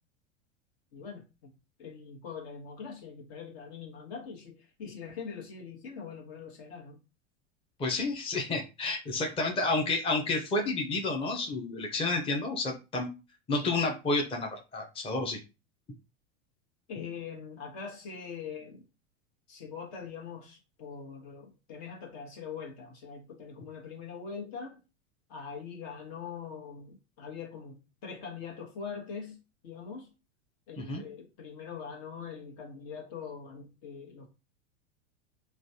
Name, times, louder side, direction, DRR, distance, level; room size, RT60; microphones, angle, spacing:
voice 1, 0.9-1.5 1.8-7.0 16.9-18.9 19.5-24.8 25.3-30.1 30.7-34.3, left 6 dB, 65° left, 1.3 m, -43 dB
voice 2, 7.8-13.1 13.5-15.4 30.8-31.0, left 3 dB, 15° left, 0.6 m, -30 dB
3.2 x 2.3 x 2.7 m
hypercardioid pair, 105°, 35 cm